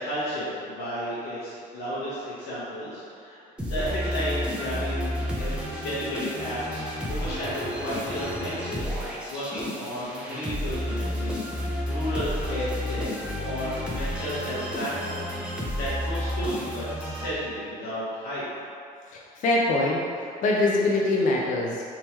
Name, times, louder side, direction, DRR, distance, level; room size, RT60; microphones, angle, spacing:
voice 1, 0.0-3.4 3.6-5.1 5.4-11.4 11.8-18.5, equal, 80° left, -11 dB, 1.0 m, -33 dB
sound 1, 3.6-17.8, equal, 5° right, 0.7 m, -31 dB
voice 2, 19.1-21.8, left 2 dB, 50° left, -3 dB, 0.5 m, -24 dB
3.5 x 2.9 x 2.9 m, 2.3 s
cardioid pair, 110°, 17 cm